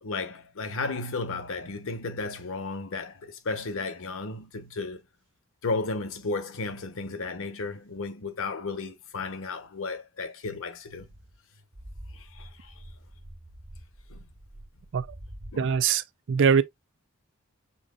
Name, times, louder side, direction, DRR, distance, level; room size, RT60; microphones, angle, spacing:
voice 1, 0.0-5.0 5.6-11.1 12.1-12.7 14.1-14.2 15.5-15.7, left 3 dB, 65° left, 0.9 m, -34 dB
sound 1, 11.1-15.6, right 1 dB, 30° right, 0.8 m, -46 dB
voice 2, 15.6-16.6, right 6 dB, 60° right, 0.5 m, -22 dB
5.7 x 3.7 x 2.4 m
head